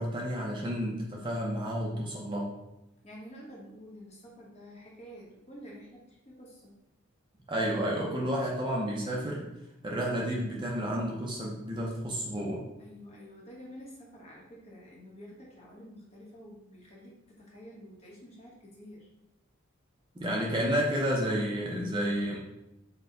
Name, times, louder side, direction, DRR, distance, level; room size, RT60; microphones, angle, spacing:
voice 1, 0.0-2.5 7.5-9.4 9.8-12.6 20.2-22.4, equal, 25° right, -3 dB, 0.6 m, -31 dB
voice 2, 3.0-6.7 12.8-19.1, equal, 30° left, -4 dB, 0.9 m, -49 dB
4.3 x 2.2 x 3.8 m, 0.90 s
head